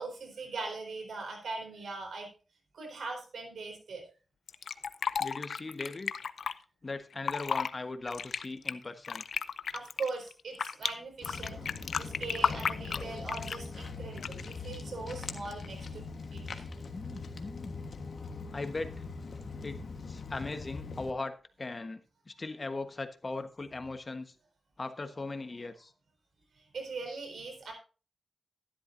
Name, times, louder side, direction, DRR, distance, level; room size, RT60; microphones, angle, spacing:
voice 1, 0.0-2.3 2.7-4.0 9.7-11.6 12.0-16.4 26.7-27.7, right 3 dB, 80° right, 3 dB, 4.1 m, -40 dB
Fill (with liquid), 4.5-6.5 7.1-7.7 8.1-10.9 11.2-13.7 14.2-14.6, left 6 dB, 80° left, 0.5 m, -33 dB
voice 2, 5.2-6.1 6.8-9.2 16.9-17.8 18.5-19.0 19.6-19.8 20.1-21.3 21.6-22.0 22.3-24.3 24.8-25.9, left 3 dB, 35° left, 8 dB, 1.2 m, -39 dB
Walk footsteps, 11.2-21.1, left 4 dB, 65° left, 1.4 m, -42 dB
13.0 x 11.5 x 2.7 m, 0.34 s
wide cardioid pair, 80°, 0 cm